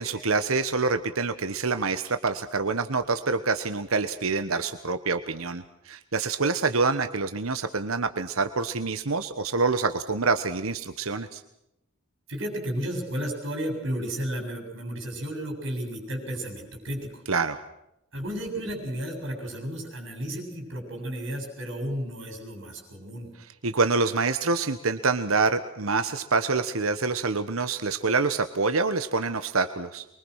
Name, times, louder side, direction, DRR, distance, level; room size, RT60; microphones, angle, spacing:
voice 1, 0.0-11.4 17.3-17.6 23.6-30.1, right 4 dB, 75° right, 10 dB, 1.3 m, -26 dB
voice 2, 12.3-17.2 18.1-23.3, equal, 60° right, 3 dB, 7.3 m, -33 dB
24.5 x 23.5 x 6.5 m, 0.83 s
head